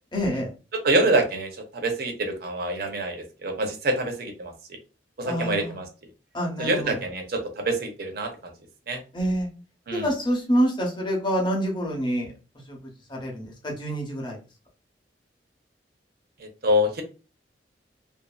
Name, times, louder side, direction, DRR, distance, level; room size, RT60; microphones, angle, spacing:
voice 1, 0.1-0.5 5.2-5.8 6.3-7.0 9.1-9.5 9.9-12.3 12.7-14.4, equal, 25° left, -1 dB, 0.8 m, -27 dB
voice 2, 0.8-4.8 5.2-5.9 6.6-8.5 8.9-9.0 9.9-10.1 16.4-17.0, right 1 dB, 60° right, 4 dB, 0.7 m, -26 dB
2.6 x 2.4 x 2.3 m, 0.32 s
head